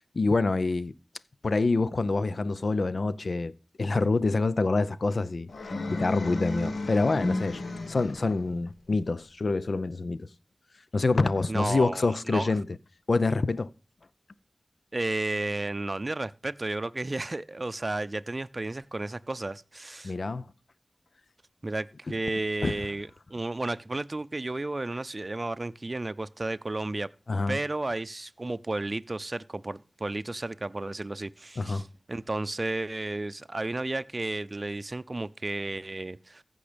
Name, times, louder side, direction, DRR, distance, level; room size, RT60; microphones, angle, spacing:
voice 1, 0.1-0.9 1.4-3.5 3.8-7.6 7.9-10.3 10.9-12.6 13.1-13.7 20.0-20.4 22.6-22.7 27.3-27.6 31.6-31.8, left 3 dB, 65° left, 0.6 m, -26 dB
sound 1, 5.5-8.4, left 2 dB, 85° left, 1.2 m, -33 dB
voice 2, 11.5-12.5 14.9-20.1 21.6-27.1 27.5-36.4, right 2 dB, 40° right, 0.5 m, -33 dB
15.0 x 5.4 x 5.1 m
wide cardioid pair, 55°, 0 cm